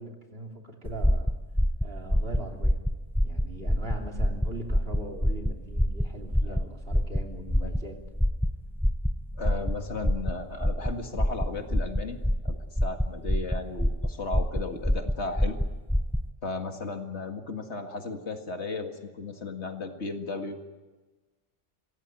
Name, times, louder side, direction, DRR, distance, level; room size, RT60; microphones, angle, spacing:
voice 1, 0.0-1.3 1.8-2.8 3.2-8.0, right 1 dB, 55° right, 2 dB, 3.3 m, -40 dB
sound 1, 0.9-16.3, equal, 5° left, 0.4 m, -27 dB
voice 2, 9.4-12.2 12.4-15.6 16.4-20.6, left 3 dB, 65° left, 5 dB, 2.3 m, -35 dB
24.5 x 16.5 x 9.3 m, 1.2 s
omnidirectional pair, 1.2 m